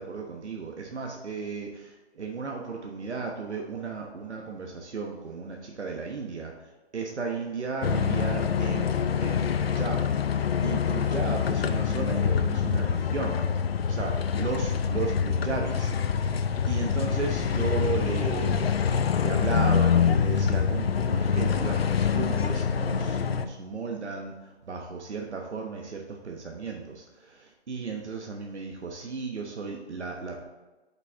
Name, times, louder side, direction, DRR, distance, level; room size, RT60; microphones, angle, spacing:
voice 1, 0.0-6.5 6.9-10.0 10.3-13.4 13.9-16.3 16.7-18.6 19.2-30.4, right 4 dB, 85° right, 1 dB, 1.2 m, -35 dB
sound 1, 7.8-23.5, left 7 dB, 65° left, 0.6 m, -25 dB
7.8 x 5.8 x 3.6 m, 1.2 s
hypercardioid pair, 160°, 33 cm